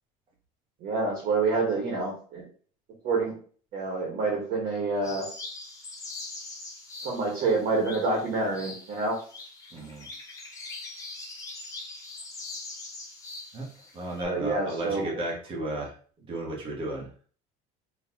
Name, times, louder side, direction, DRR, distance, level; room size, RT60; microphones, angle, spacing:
voice 1, 0.8-2.4 3.0-3.4 3.7-5.2 7.0-9.2 14.3-15.1, right 3 dB, 50° right, -1 dB, 1.5 m, -27 dB
sound 1, 5.0-14.2, left 3 dB, 20° left, 0.8 m, -42 dB
voice 2, 9.7-10.1 13.5-13.7 13.9-17.1, right 1 dB, 30° right, -1 dB, 1.3 m, -34 dB
3.8 x 3.2 x 2.9 m, 0.43 s
cardioid pair, 160°, 18 cm